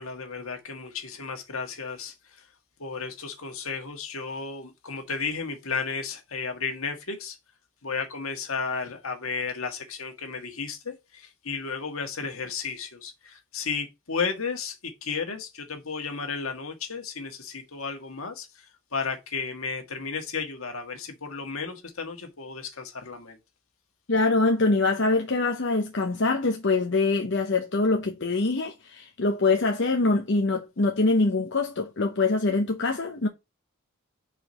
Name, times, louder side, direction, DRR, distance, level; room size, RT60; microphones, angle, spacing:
voice 1, 0.0-2.4 2.8-7.4 7.8-23.4, left 5 dB, 75° left, 1.6 m, -33 dB
voice 2, 24.1-33.3, left 3 dB, 55° left, 0.8 m, -24 dB
4.9 x 4.6 x 5.3 m
head